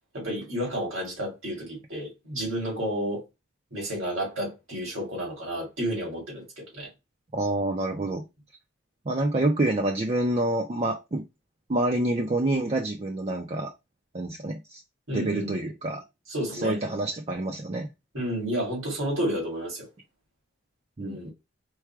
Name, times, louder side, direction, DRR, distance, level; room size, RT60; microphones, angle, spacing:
voice 1, 0.1-3.2 3.7-6.9 8.0-8.1 15.1-15.7 16.3-16.8 18.1-19.9 21.0-21.3, equal, 90° right, 2.8 m, -31 dB
voice 2, 7.3-8.2 9.1-11.3 11.7-13.7 14.1-14.8 15.1-16.0 16.5-17.9 21.0-21.3, right 1 dB, 30° right, 0.5 m, -27 dB
4.7 x 2.3 x 4.5 m
head